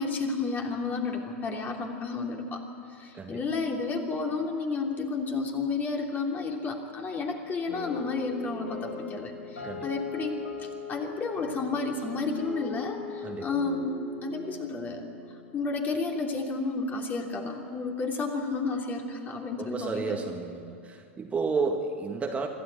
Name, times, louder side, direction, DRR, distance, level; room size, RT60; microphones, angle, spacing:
voice 1, 0.0-2.6 2.9-15.1 15.5-20.2, left 4 dB, 25° left, 1 dB, 3.2 m, -31 dB
sound 1, 7.7-16.2, left 5 dB, 85° left, 3.8 m, -40 dB
voice 2, 19.6-22.5, right 4 dB, 20° right, 2 dB, 1.8 m, -31 dB
26.0 x 13.0 x 8.3 m, 2.5 s
hypercardioid pair, 95°, 7 cm